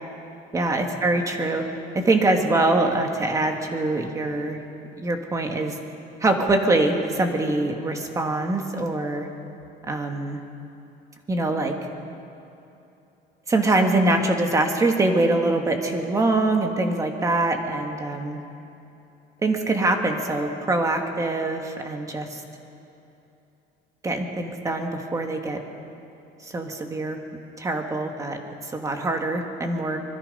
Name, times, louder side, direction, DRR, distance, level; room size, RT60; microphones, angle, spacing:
voice 1, 0.5-1.6 1.9-4.6 5.0-5.8 6.2-9.3 9.8-10.4 11.3-11.8 13.5-18.4 19.4-22.4 24.0-25.6 26.4-27.2 27.6-30.0, right 2 dB, 15° right, 4 dB, 1.7 m, -24 dB
24.5 x 22.5 x 5.4 m, 2.8 s
cardioid pair, 170°, 20 cm